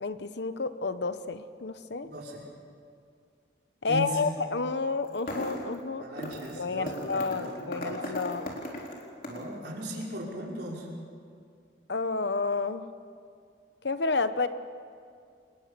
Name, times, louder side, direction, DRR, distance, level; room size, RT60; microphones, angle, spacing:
voice 1, 0.0-2.1 3.8-6.0 6.6-8.5 11.9-12.9 13.8-14.5, left 4 dB, 65° left, 11 dB, 0.9 m, -30 dB
voice 2, 2.0-2.4 3.9-4.1 6.0-7.9 9.2-10.9, equal, 60° right, -3 dB, 5.5 m, -38 dB
sound 1, 5.0-5.7 6.2-6.5 6.9-9.5, left 1 dB, 45° left, 4.1 m, -37 dB
27.5 x 20.5 x 6.8 m, 2.3 s
head